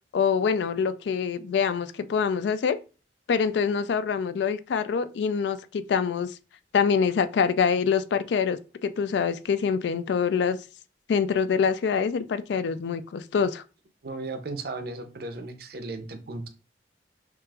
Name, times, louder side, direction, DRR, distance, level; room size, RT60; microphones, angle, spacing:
voice 1, 0.1-2.8 3.3-6.4 6.7-10.6 11.1-13.6, left 6 dB, 70° left, 0.3 m, -25 dB
voice 2, 14.0-16.5, right 3 dB, 55° right, 0.5 m, -35 dB
5.8 x 2.5 x 2.3 m
head